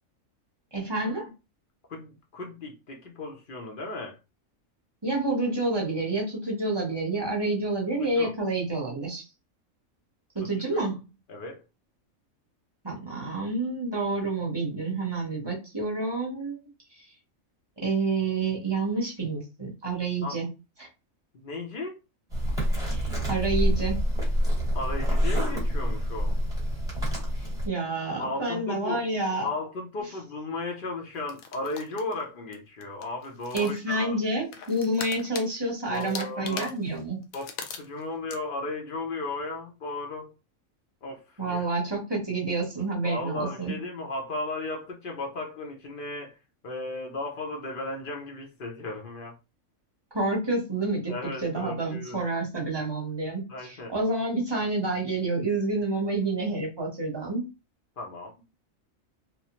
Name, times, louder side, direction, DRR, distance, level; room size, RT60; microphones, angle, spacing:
voice 1, 0.7-1.3 5.0-9.2 10.3-11.0 12.8-16.6 17.8-20.5 20.8-20.9 22.9-24.0 27.6-29.5 33.5-37.3 41.4-43.7 50.1-51.1 51.4-57.4, right 2 dB, 25° right, 0.8 m, -28 dB
voice 2, 1.9-4.2 8.0-8.3 10.7-10.8 11.3-11.6 20.2-20.4 21.3-22.0 24.7-26.4 28.2-29.1 29.4-34.1 35.9-36.7 37.3-40.3 41.0-41.7 43.0-46.4 46.6-49.3 51.1-52.2 53.5-53.9 58.0-58.3, left 2 dB, 50° left, 0.7 m, -35 dB
sound 1, 22.3-27.7, equal, 5° right, 1.0 m, -26 dB
sound 2, 31.3-32.2 32.5-32.6 32.8-34.0 34.5-35.5 35.9-38.0 38.3-38.4, left 6 dB, 85° left, 1.0 m, -39 dB
2.9 x 2.0 x 2.8 m
omnidirectional pair, 1.4 m